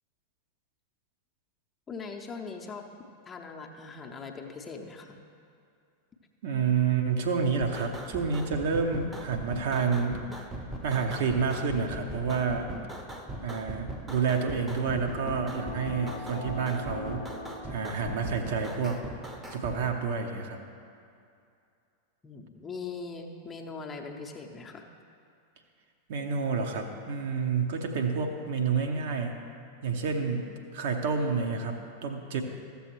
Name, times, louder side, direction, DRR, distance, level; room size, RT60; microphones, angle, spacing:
voice 1, 1.9-2.9 3.3-5.2 22.2-24.8, left 4 dB, 20° left, 2 dB, 0.7 m, -40 dB
voice 2, 6.4-10.2 10.8-12.8 13.4-17.2 17.7-19.0 19.5-20.6 26.1-29.4 29.8-32.4, right 5 dB, 55° right, 4 dB, 0.8 m, -29 dB
sound 1, 7.6-19.8, right 1 dB, 10° right, 0.8 m, -40 dB
sound 2, 14.6-19.1 19.4-19.5, left 2 dB, 80° right, 1.8 m, -42 dB
14.0 x 7.0 x 3.1 m, 2.5 s
figure-of-eight pair, 90°, 0 cm